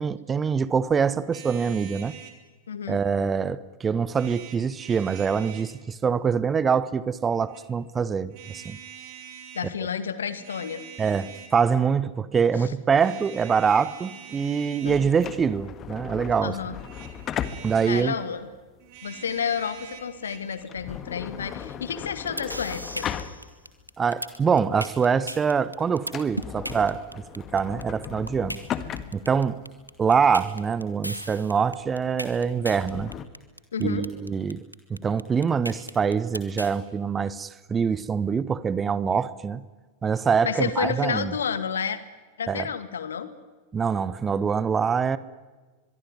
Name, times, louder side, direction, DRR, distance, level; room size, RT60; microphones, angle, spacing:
voice 1, 0.0-2.1 2.9-8.8 11.0-16.6 17.6-18.1 24.0-27.0 27.4-28.6 29.1-29.6 30.0-33.1 33.8-34.6 34.9-39.6 40.0-41.3 42.5-42.7 43.7-45.2, right 6 dB, 20° right, 17 dB, 1.0 m, -24 dB
sound 1, 1.3-2.4 4.1-5.7 7.2-7.6 8.3-9.7 10.2-11.6 12.9-15.4 16.7-18.1 18.8-20.6, right 9 dB, 45° right, 4.1 m, -45 dB
voice 2, 2.7-3.0 9.5-10.8 12.6-12.7 14.8-15.1 16.4-16.8 17.9-18.5 19.0-23.1 33.7-34.1 40.4-42.0 42.4-43.3, left 7 dB, 70° left, 11 dB, 2.0 m, -30 dB
sound 2, 14.9-23.9 24.3-24.4 25.0-25.2 25.5-25.6 26.0-33.3, left 9 dB, 30° left, 1.7 m, -37 dB
sound 3, 22.0-36.7, equal, 90° right, 2.0 m, -36 dB
23.5 x 23.0 x 9.6 m, 1.3 s
figure-of-eight pair, 90°, 0 cm